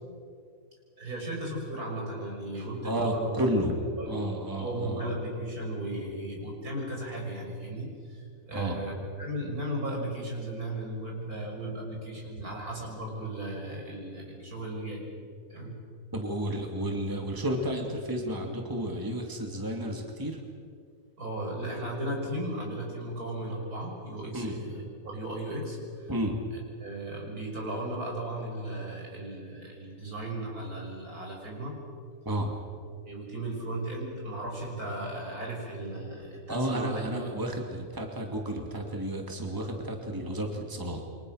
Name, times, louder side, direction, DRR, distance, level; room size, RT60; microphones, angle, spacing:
voice 1, 1.0-15.1 15.5-15.8 21.2-26.1 26.8-31.8 33.0-37.0, right 1 dB, 70° right, -1 dB, 6.7 m, -36 dB
voice 2, 2.5-3.7 4.1-5.0 8.5-8.8 16.1-20.4 24.3-24.6 26.1-26.4 32.2-32.5 36.5-41.1, equal, 15° right, 2 dB, 2.5 m, -32 dB
28.5 x 25.0 x 6.5 m, 2.2 s
omnidirectional pair, 1.6 m